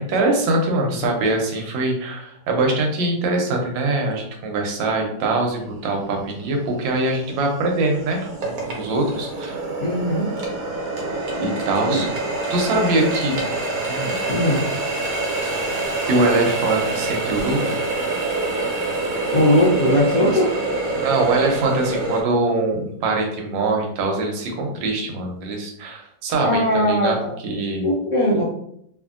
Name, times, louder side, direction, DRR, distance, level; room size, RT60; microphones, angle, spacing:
voice 1, 0.0-9.7 11.3-12.1 12.5-13.5 13.9-14.2 16.1-17.8 20.9-27.2 27.4-27.9, right 2 dB, 85° right, 1 dB, 1.4 m, -23 dB
voice 2, 0.8-1.1 9.8-10.3 11.9-12.0 12.8-12.9 14.3-14.6 19.3-20.5 26.4-27.3 27.8-28.4, left 1 dB, 65° left, -5 dB, 0.8 m, -20 dB
Water tap faucet, 5.7-5.8 6.4-22.2, right 2 dB, 60° right, 1.1 m, -26 dB
2.9 x 2.6 x 2.4 m, 0.72 s
omnidirectional pair, 2.0 m